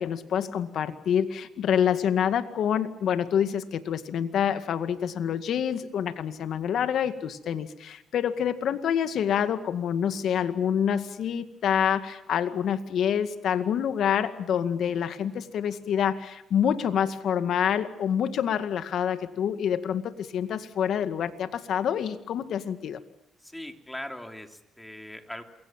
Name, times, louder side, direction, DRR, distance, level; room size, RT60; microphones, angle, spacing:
voice 1, 0.0-23.0, left 8 dB, 70° left, 9 dB, 2.0 m, -27 dB
voice 2, 23.4-25.4, left 1 dB, 5° left, 5 dB, 3.2 m, -40 dB
28.0 x 22.5 x 7.5 m, 0.80 s
cardioid pair, 90°, 0 cm